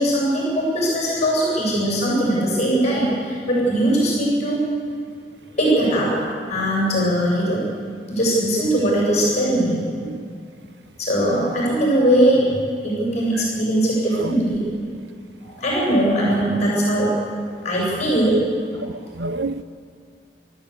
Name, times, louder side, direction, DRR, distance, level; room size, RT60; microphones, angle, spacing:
voice 1, 0.0-4.6 5.6-6.2 6.5-7.6 8.1-9.8 11.0-12.5 12.8-14.7 15.4-17.1 17.6-18.4 18.7-18.9, right 1 dB, 40° left, 7.6 m, -20 dB
voice 2, 18.8-19.6, right 3 dB, 75° right, 0.8 m, -29 dB
27.5 x 13.5 x 8.4 m
head